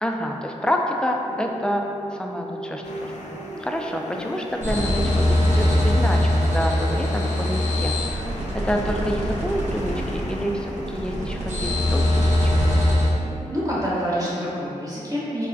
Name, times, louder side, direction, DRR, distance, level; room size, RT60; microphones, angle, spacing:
voice 1, 0.0-12.7, equal, 5° left, 1 dB, 0.4 m, -28 dB
sound 1, 1.1-13.6, right 1 dB, 80° right, 1.0 m, -38 dB
sound 2, 2.8-11.7, left 1 dB, 65° left, 0.5 m, -38 dB
sound 3, 4.6-13.1, left 1 dB, 60° right, 1.1 m, -22 dB
voice 2, 13.5-15.5, equal, 30° right, -8 dB, 0.9 m, -26 dB
4.5 x 2.1 x 2.6 m, 2.7 s
cardioid pair, 40°, 13 cm